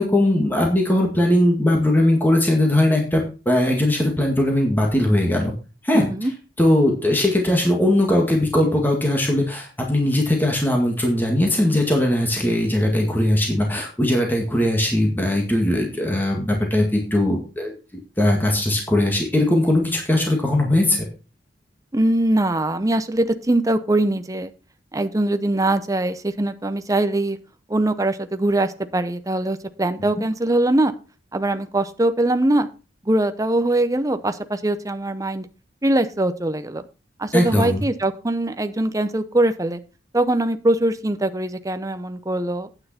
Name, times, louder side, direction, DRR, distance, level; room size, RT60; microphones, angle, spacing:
voice 1, 0.0-5.5 5.8-6.1 6.6-17.7 18.2-21.0 37.3-37.8, left 1 dB, 10° left, 0 dB, 2.0 m, -19 dB
voice 2, 5.9-6.3 21.9-24.5 24.9-27.4 27.7-30.9 31.3-32.7 33.1-35.5 35.8-36.8 37.2-39.8 40.1-42.7, right 1 dB, 20° right, 10 dB, 0.7 m, -22 dB
9.3 x 8.9 x 4.2 m, 0.32 s
head